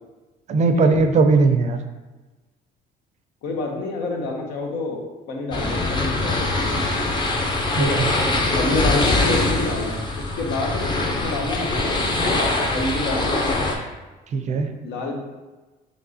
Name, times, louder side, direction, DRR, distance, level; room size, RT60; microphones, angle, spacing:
voice 1, 0.5-1.8 7.8-8.1 14.3-14.7, right 4 dB, 45° right, 7 dB, 0.4 m, -18 dB
voice 2, 3.4-7.1 7.8-8.0 8.5-10.0 10.4-12.0 12.7-13.5 14.8-15.2, left 2 dB, 85° left, 0 dB, 0.9 m, -28 dB
sound 1, 5.5-13.7, left 2 dB, 25° left, 0.6 m, -23 dB
5.2 x 3.0 x 2.7 m, 1.2 s
cardioid pair, 110°, 17 cm